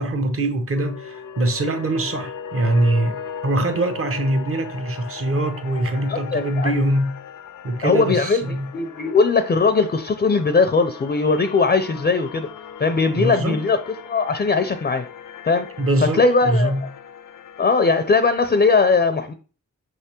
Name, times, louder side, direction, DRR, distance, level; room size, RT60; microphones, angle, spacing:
voice 1, 0.0-7.2 7.6-8.7 13.1-13.6 15.8-16.9, right 1 dB, 45° right, 0.8 m, -23 dB
sound 1, 0.7-18.8, left 7 dB, 90° left, 0.5 m, -38 dB
voice 2, 6.1-6.7 7.8-12.5 12.8-13.8 14.1-15.0 15.4-15.7 16.0-16.8 17.6-19.3, left 4 dB, 30° left, 0.4 m, -19 dB
5.4 x 3.3 x 2.9 m
cardioid pair, 60°, 31 cm